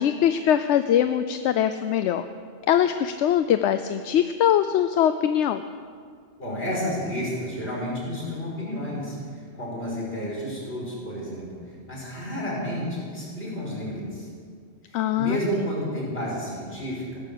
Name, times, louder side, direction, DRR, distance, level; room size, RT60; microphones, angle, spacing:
voice 1, 0.0-2.3 2.7-5.6 14.9-15.4, left 10 dB, 85° left, 10 dB, 0.9 m, -22 dB
voice 2, 6.4-14.3 14.9-17.2, equal, 60° left, -4 dB, 5.7 m, -31 dB
16.0 x 13.0 x 6.8 m, 2.1 s
omnidirectional pair, 1.2 m